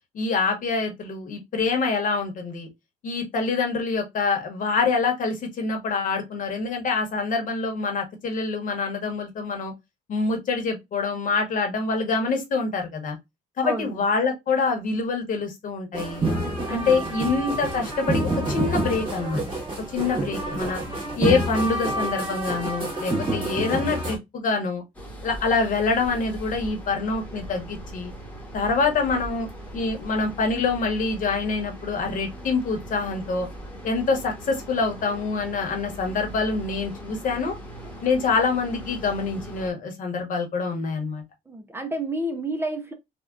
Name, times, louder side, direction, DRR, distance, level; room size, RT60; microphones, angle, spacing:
voice 1, 0.1-2.7 3.0-9.7 10.1-13.2 13.6-16.3 16.7-19.4 19.9-20.8 21.1-24.8 25.2-28.1 28.5-33.5 33.8-37.5 38.0-41.2, left 4 dB, 50° left, 1.1 m, -26 dB
voice 2, 13.6-14.0 16.4-17.2 37.8-38.0 41.5-42.9, right 1 dB, 15° right, 0.5 m, -31 dB
sound 1, 15.9-24.2, right 1 dB, 30° right, 1.9 m, -27 dB
sound 2, 24.9-39.7, right 1 dB, 10° left, 1.2 m, -40 dB
3.4 x 2.3 x 2.4 m
cardioid pair, 110°, 17 cm